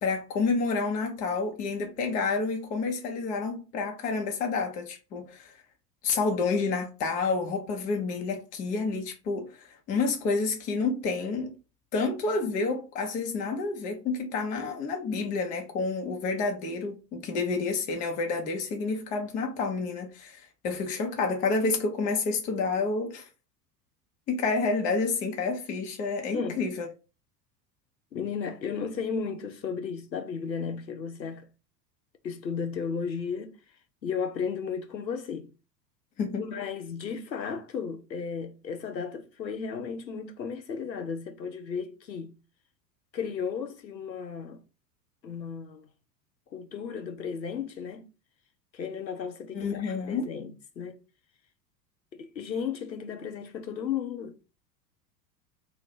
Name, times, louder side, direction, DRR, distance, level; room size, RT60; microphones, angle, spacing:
voice 1, 0.0-5.5 6.0-11.6 11.9-23.3 24.3-26.9 36.2-36.5 49.5-50.2, left 4 dB, 20° left, 0.4 m, -29 dB
voice 2, 26.3-26.6 28.1-31.5 32.2-33.6 34.0-35.5 36.4-42.3 43.1-44.6 45.2-45.9 46.5-48.1 48.7-51.0 52.1-54.4, left 6 dB, 90° left, 0.6 m, -34 dB
2.3 x 2.1 x 3.9 m
figure-of-eight pair, 80°, 50 cm